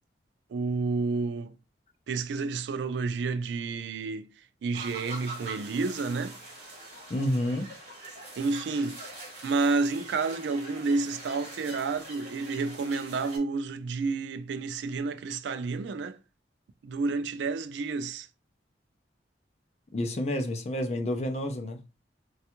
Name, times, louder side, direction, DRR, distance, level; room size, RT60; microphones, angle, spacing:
voice 1, 0.5-1.6 2.1-4.3 4.6-6.4 8.4-9.0 9.4-16.2 16.8-18.3, right 4 dB, 75° right, 0.3 m, -30 dB
sound 1, 4.7-13.4, right 2 dB, 35° right, 1.1 m, -44 dB
voice 2, 7.1-7.7 19.9-21.8, left 1 dB, 35° left, 0.4 m, -29 dB
3.2 x 2.3 x 2.9 m
head